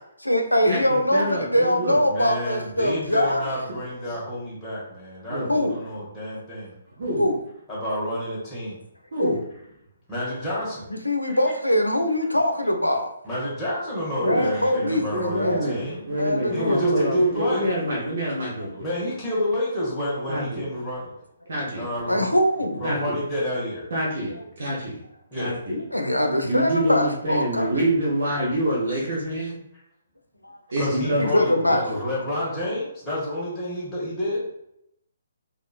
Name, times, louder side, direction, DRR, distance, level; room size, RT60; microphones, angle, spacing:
voice 1, 0.2-3.5 5.5-5.8 7.1-7.4 9.2-9.4 10.9-13.1 14.3-15.8 16.1-17.1 22.1-22.8 25.7-27.9 30.4-30.6 31.2-32.0, left 1 dB, 85° left, 5 dB, 0.5 m, -23 dB
voice 2, 1.1-2.0 5.3-5.5 7.0-7.2 9.1-9.4 14.2-14.4 15.1-18.9 20.3-20.6 21.5-21.9 22.8-23.2 23.9-25.0 25.3-25.8 26.4-29.6 30.7-31.2, right 1 dB, 55° right, -4 dB, 0.8 m, -26 dB
voice 3, 2.0-6.7 7.7-8.8 10.1-10.9 11.3-11.4 13.2-16.0 16.5-17.7 18.8-21.1 21.8-22.3 22.8-23.9 25.3-25.6 30.8-34.5, left 1 dB, 10° left, -9 dB, 1.2 m, -28 dB
3.6 x 2.4 x 2.4 m, 0.77 s
figure-of-eight pair, 130°, 0 cm